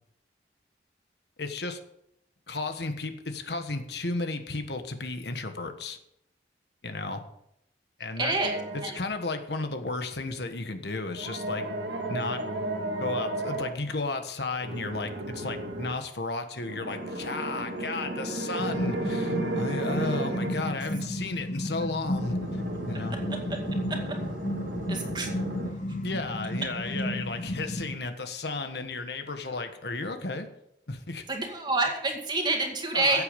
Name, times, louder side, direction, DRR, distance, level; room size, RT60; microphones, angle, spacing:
voice 1, 1.4-1.8 2.5-6.0 6.8-7.2 8.0-8.4 8.9-11.7 12.1-12.4 13.0-22.6 22.9-23.2 26.0-30.5 30.9-31.3 32.9-33.2, left 3 dB, 70° left, 7 dB, 1.4 m, -33 dB
voice 2, 8.2-9.0 23.9-24.0 24.9-25.3 31.3-33.2, right 2 dB, 25° right, 3 dB, 2.2 m, -28 dB
sound 1, 8.4-9.3 11.1-13.7 14.6-15.9 16.6-20.7 22.0-25.7, right 1 dB, 80° right, 2.0 m, -34 dB
sound 2, 18.6-27.9, left 1 dB, 45° left, 1.5 m, -33 dB
15.5 x 8.4 x 5.3 m, 0.76 s
head